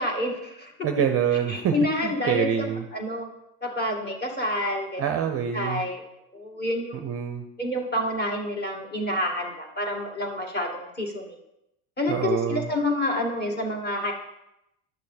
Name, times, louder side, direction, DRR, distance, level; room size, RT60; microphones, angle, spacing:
voice 1, 0.0-0.9 1.5-2.6 2.9-3.3 3.6-5.2 5.5-6.0 6.3-7.1 7.6-11.4 12.0-14.1, left 1 dB, 20° left, 1 dB, 2.1 m, -28 dB
voice 2, 0.8-1.7 2.0-2.8 5.0-5.8 7.0-7.4 12.1-12.7, right 8 dB, 30° right, 6 dB, 0.6 m, -26 dB
10.5 x 6.3 x 4.2 m, 0.87 s
supercardioid pair, 110°, 47 cm